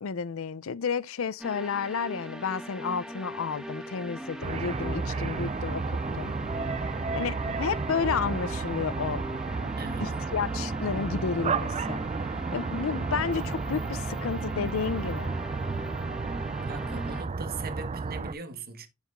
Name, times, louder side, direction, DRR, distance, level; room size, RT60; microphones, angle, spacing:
voice 1, 0.0-6.4 7.1-9.4 10.0-12.0 12.5-15.4, left 6 dB, 70° left, 0.5 m, -31 dB
sound 1, 1.4-17.2, equal, 5° right, 1.3 m, -40 dB
sound 2, 3.1-15.2, left 3 dB, 30° left, 4.3 m, -54 dB
sound 3, 4.4-18.3, right 4 dB, 30° right, 0.4 m, -32 dB
voice 2, 9.8-10.1 16.6-18.9, right 4 dB, 45° right, 1.4 m, -41 dB
9.1 x 7.1 x 2.5 m
head